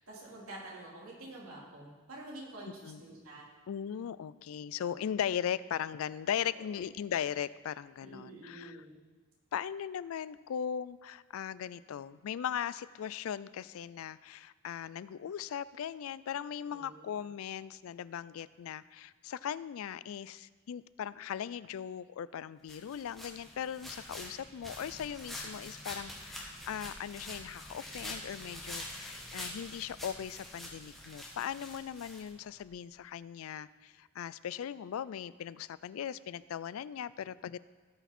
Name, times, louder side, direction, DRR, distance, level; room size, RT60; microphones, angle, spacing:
voice 1, 0.0-3.5 4.8-4.9 6.6-6.8 8.0-8.9 16.7-17.1, right 1 dB, 80° right, -4 dB, 2.8 m, -48 dB
voice 2, 2.7-3.0 3.7-8.8 9.5-37.6, left 9 dB, 75° left, 18 dB, 0.3 m, -38 dB
sound 1, 22.7-32.7, left 1 dB, ahead, 1.5 m, -45 dB
16.5 x 5.8 x 4.3 m, 1.4 s
head